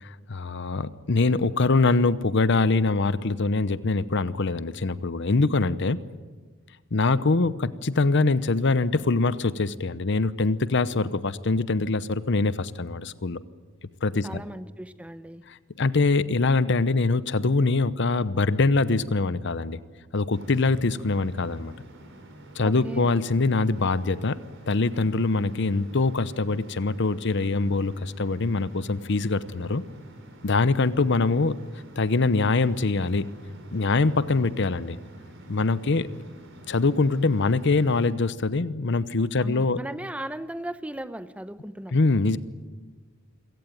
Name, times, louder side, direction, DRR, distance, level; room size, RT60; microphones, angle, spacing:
voice 1, 0.0-6.0 6.9-13.4 14.0-14.4 15.5-19.8 20.1-21.7 22.5-24.4 24.7-29.8 30.4-31.6 32.0-33.3 33.7-35.0 35.5-36.1 36.7-39.8 41.9-42.4, left 3 dB, 60° left, 16 dB, 0.8 m, -23 dB
voice 2, 14.2-15.4 22.6-23.1 39.4-41.9, right 1 dB, 5° right, 13 dB, 0.8 m, -37 dB
sound 1, 20.3-38.1, right 1 dB, 65° right, 4.9 m, -48 dB
27.0 x 17.0 x 9.3 m, 1.4 s
head